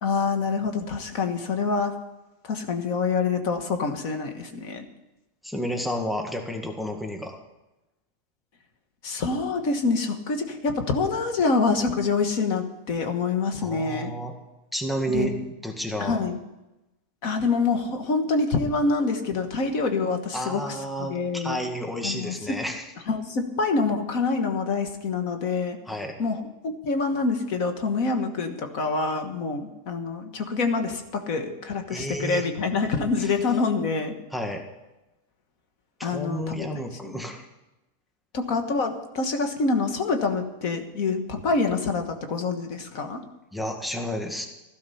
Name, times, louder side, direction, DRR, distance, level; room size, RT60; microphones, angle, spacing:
voice 1, 0.0-1.9 2.5-4.8 9.0-14.1 15.1-15.3 16.0-16.4 17.2-20.6 21.0-21.6 22.0-22.6 23.1-25.8 26.2-34.2 36.0-36.7 37.0-37.2 38.3-43.2, left 4 dB, 65° left, 5 dB, 1.9 m, -26 dB
voice 2, 5.4-7.4 13.6-14.3 14.7-15.3 15.6-16.2 20.3-22.9 25.9-26.2 31.9-32.5 33.2-33.3 34.3-34.6 36.0-37.5 43.5-44.5, equal, ahead, 2 dB, 1.8 m, -31 dB
15.5 x 12.5 x 5.7 m, 0.97 s
omnidirectional pair, 1.6 m